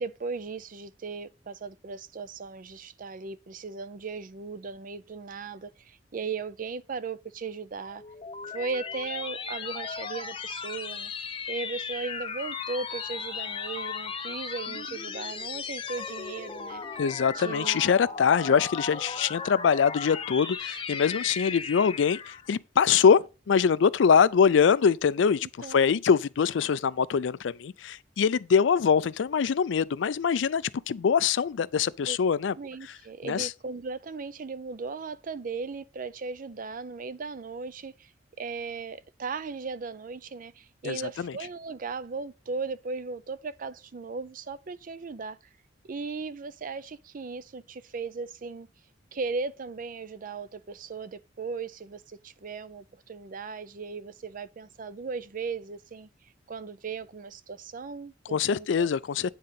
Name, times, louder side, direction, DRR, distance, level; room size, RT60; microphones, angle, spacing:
voice 1, 0.0-8.0 8.5-11.1 11.5-16.8 17.3-17.8 18.4-18.6 25.4-26.0 32.1-32.2 32.6-38.1 38.4-45.4 45.9-48.7 49.1-56.1 56.5-58.9, right 4 dB, 50° right, 0.5 m, -37 dB
sound 1, 7.8-22.5, left 5 dB, 30° left, 0.8 m, -36 dB
voice 2, 17.0-32.5 33.2-33.5 40.8-41.3 58.3-59.3, left 6 dB, 85° left, 0.4 m, -23 dB
9.5 x 3.8 x 5.7 m
head